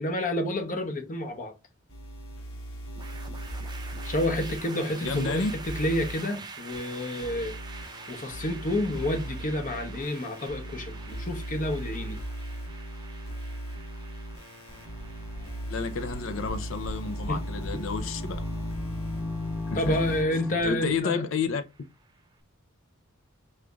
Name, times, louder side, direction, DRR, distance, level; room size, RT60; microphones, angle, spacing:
voice 1, 0.0-1.5 4.0-7.6 8.1-12.2 17.3-17.4 17.7-17.8 19.7-21.2, left 1 dB, 40° left, 0.8 m, -29 dB
sound 1, 1.9-6.1 6.7-20.2, right 1 dB, 80° left, 1.2 m, -38 dB
sound 2, 3.0-22.2, right 4 dB, 20° right, 0.5 m, -47 dB
voice 2, 5.0-5.5 15.7-18.4 19.7-20.0 20.6-21.6, left 5 dB, 65° left, 0.5 m, -30 dB
sound 3, 14.7-21.0, left 2 dB, ahead, 1.1 m, -37 dB
5.0 x 3.2 x 2.3 m
head